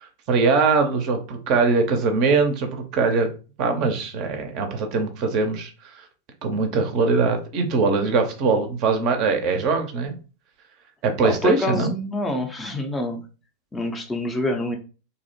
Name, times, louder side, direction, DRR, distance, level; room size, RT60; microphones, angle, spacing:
voice 1, 0.3-3.3 3.6-5.7 6.4-10.1 11.0-11.9, right 4 dB, 40° right, 5 dB, 0.5 m, -21 dB
voice 2, 11.2-13.2 13.7-14.8, left 1 dB, 15° left, 3 dB, 0.4 m, -26 dB
2.6 x 2.0 x 2.6 m, 0.35 s
figure-of-eight pair, 90°, 0 cm